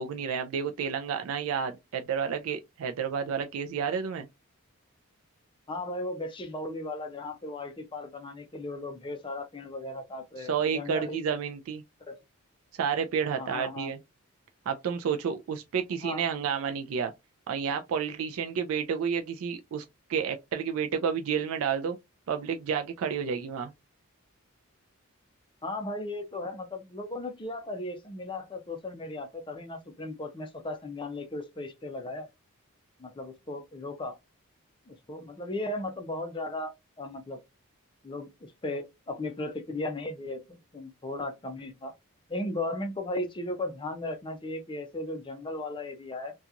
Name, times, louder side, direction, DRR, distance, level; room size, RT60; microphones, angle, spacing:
voice 1, 0.0-4.3 10.4-11.8 12.7-14.0 14.7-17.1 17.5-22.0 22.3-23.7, right 7 dB, 70° right, 0.3 m, -30 dB
voice 2, 5.7-11.2 12.1-12.2 13.4-13.9 16.0-16.2 25.6-32.3 33.0-34.2 34.9-37.4 38.0-41.9 42.3-46.3, left 2 dB, 20° left, 0.5 m, -36 dB
2.8 x 2.3 x 2.4 m
head